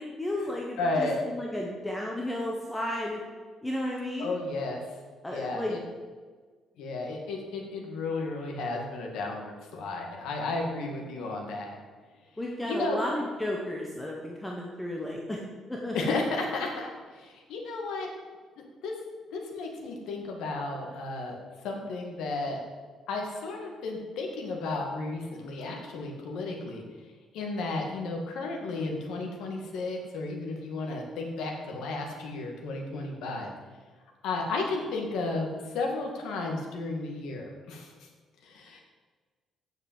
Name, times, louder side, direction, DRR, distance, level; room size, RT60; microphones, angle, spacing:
voice 1, 0.0-3.2 3.6-4.3 5.2-5.8 12.4-15.4 15.7-16.1, left 1 dB, 5° left, -1 dB, 0.9 m, -33 dB
voice 2, 0.8-1.2 4.2-4.8 5.3-5.8 6.8-11.8 12.6-13.0 15.9-16.9 17.1-18.1 18.8-18.9 19.3-21.4 21.6-22.6 23.1-26.8 27.3-33.5 34.2-35.5 35.7-37.9 38.4-38.8, left 3 dB, 75° left, 1 dB, 1.9 m, -33 dB
7.8 x 6.6 x 7.5 m, 1.4 s
cardioid pair, 170°, 0 cm